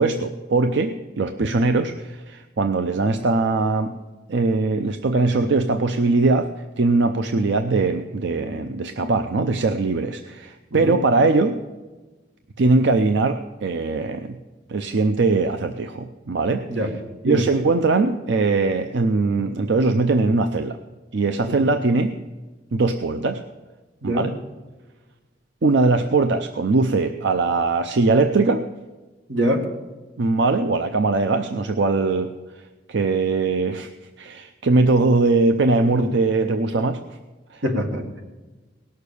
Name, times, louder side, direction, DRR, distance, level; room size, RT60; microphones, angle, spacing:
voice 1, 0.0-3.9 4.3-6.5 6.8-11.6 12.6-14.4 14.7-16.6 17.2-20.8 21.1-22.1 22.7-23.4 24.0-24.3 25.6-28.6 30.2-32.3 32.9-33.9 34.2-37.0 37.5-37.6, right 3 dB, 65° right, 7 dB, 0.6 m, -21 dB
voice 2, 29.3-29.7 36.0-36.1 37.6-38.2, equal, 90° right, 3 dB, 2.0 m, -24 dB
17.5 x 6.7 x 6.8 m, 1.2 s
head